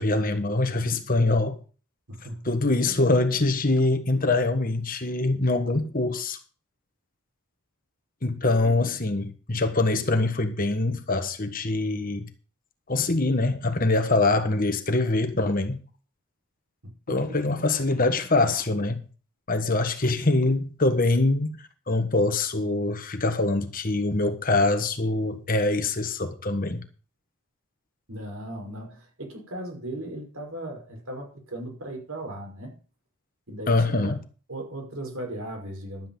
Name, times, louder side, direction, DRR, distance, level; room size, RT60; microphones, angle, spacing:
voice 1, 0.0-1.6 2.4-6.4 8.2-12.3 12.9-15.8 17.1-19.0 19.5-26.8 33.7-34.2, left 2 dB, 40° left, 1.4 m, -24 dB
voice 2, 2.1-2.6 8.6-8.8 17.1-17.4 28.1-32.7 33.5-34.2 34.5-36.1, right 1 dB, 65° right, 5.4 m, -37 dB
12.5 x 8.6 x 5.5 m
head